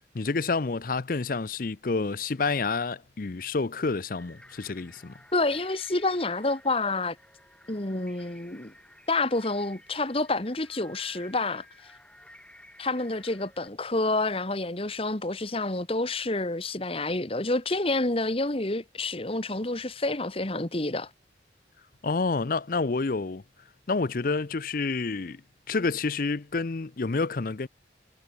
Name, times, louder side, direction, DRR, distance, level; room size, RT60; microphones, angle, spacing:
voice 1, 0.1-5.1 22.0-23.4 23.9-25.4 25.7-27.7, left 4 dB, 50° left, 0.6 m, -28 dB
sound 1, 4.1-13.7, left 1 dB, 5° left, 7.3 m, -54 dB
voice 2, 5.3-7.2 7.7-8.7 9.1-11.7 12.8-21.1, left 2 dB, 30° left, 1.7 m, -28 dB
head